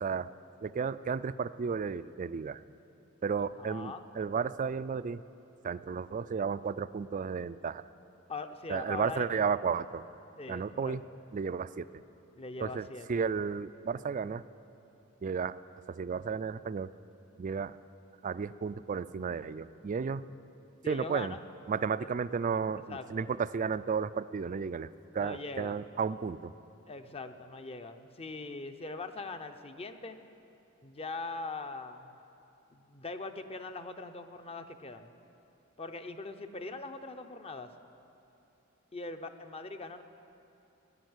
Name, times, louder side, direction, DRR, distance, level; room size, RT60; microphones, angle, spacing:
voice 1, 0.6-2.6 3.2-5.2 5.6-7.8 8.7-10.0 10.5-11.0 11.3-11.9 12.6-14.4 15.2-15.5 15.9-16.9 17.4-17.8 18.2-20.2 20.9-21.4 21.7-24.9 25.1-26.5, right 6 dB, 40° right, 15 dB, 0.3 m, -33 dB
voice 2, 3.6-4.0 8.3-9.3 10.4-11.0 12.4-13.2 20.8-21.4 22.7-23.3 25.2-25.8 26.9-30.2 30.8-32.1 32.7-35.1 35.8-37.7 38.9-40.0, left 3 dB, 30° left, 8 dB, 0.7 m, -41 dB
17.5 x 10.0 x 8.0 m, 2.8 s
head